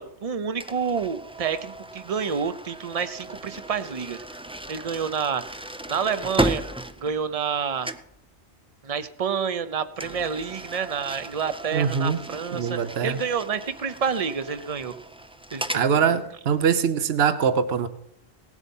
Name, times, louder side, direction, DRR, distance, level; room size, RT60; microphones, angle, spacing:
voice 1, 0.0-4.2 4.7-5.4 5.9-6.6 7.0-7.9 8.8-14.9 15.5-15.8, right 6 dB, 35° right, 12 dB, 0.8 m, -28 dB
sound 1, 0.6-7.6 7.8-8.2 10.0-15.9, right 1 dB, 10° right, 0.3 m, -35 dB
voice 2, 11.7-12.2 12.5-13.2 15.7-17.9, right 7 dB, 70° right, 11 dB, 1.1 m, -23 dB
18.0 x 8.3 x 5.5 m, 0.77 s
omnidirectional pair, 1.1 m